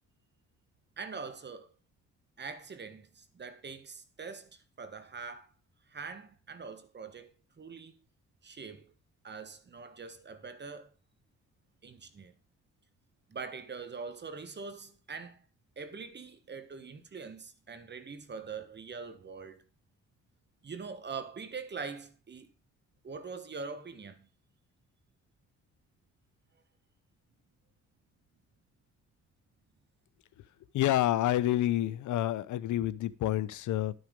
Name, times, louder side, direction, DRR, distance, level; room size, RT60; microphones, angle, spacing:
voice 1, 1.0-1.7 2.4-5.5 5.9-7.9 8.4-8.9 9.2-10.9 11.8-12.3 13.3-15.4 15.8-19.6 20.6-22.5 23.0-24.2, right 5 dB, 35° right, 1.4 m, -43 dB
voice 2, 30.7-33.9, left 13 dB, 75° left, 0.8 m, -28 dB
11.5 x 6.4 x 5.2 m
cardioid pair, 90°, 30 cm